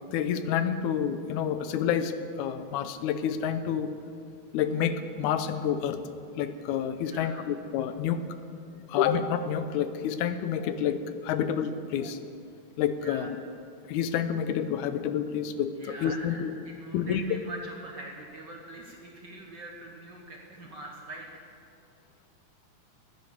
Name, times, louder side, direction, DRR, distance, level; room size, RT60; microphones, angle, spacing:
voice 1, 0.1-3.9 4.5-6.0 6.4-8.2 8.9-12.2 12.8-13.4 13.8-16.5 16.9-17.2, left 8 dB, 85° left, 10 dB, 2.1 m, -29 dB
voice 2, 7.1-7.4 13.0-13.3 15.8-21.3, right 2 dB, 50° right, 0 dB, 1.4 m, -43 dB
15.0 x 11.0 x 6.5 m, 2.4 s
omnidirectional pair, 3.4 m